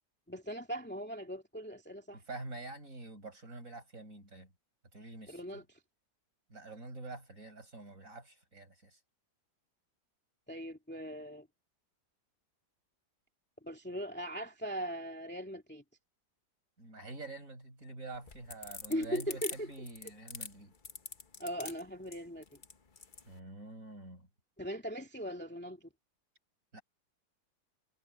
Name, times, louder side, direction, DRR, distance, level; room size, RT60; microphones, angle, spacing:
voice 1, 0.3-2.2 5.3-5.6 10.5-11.5 13.6-15.8 18.9-19.7 21.4-22.4 24.6-25.9, equal, 5° left, 2.3 m, -39 dB
voice 2, 2.1-4.5 4.9-5.6 6.5-9.0 16.8-20.7 23.3-24.3 26.7-26.8, right 2 dB, 45° right, 6.4 m, -47 dB
sound 1, 18.1-23.3, left 4 dB, 30° left, 1.1 m, -44 dB
omnidirectional pair, 2.0 m